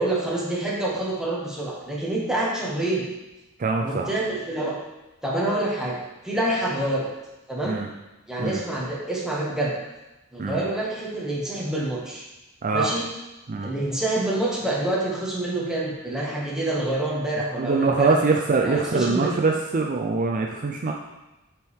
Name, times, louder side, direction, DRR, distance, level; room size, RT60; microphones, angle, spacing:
voice 1, 0.0-3.1 3.8-4.7 5.2-6.0 6.2-7.1 7.5-7.8 8.3-9.7 10.3-12.3 12.7-13.1 13.6-18.2 18.6-19.3, right 1 dB, 5° right, -5 dB, 1.3 m, -27 dB
voice 2, 3.6-4.1 7.6-7.9 8.4-8.6 10.4-10.6 12.6-12.9 13.5-13.7 17.6-20.9, right 3 dB, 40° right, 1 dB, 0.5 m, -23 dB
7.7 x 4.5 x 3.6 m, 1.0 s
head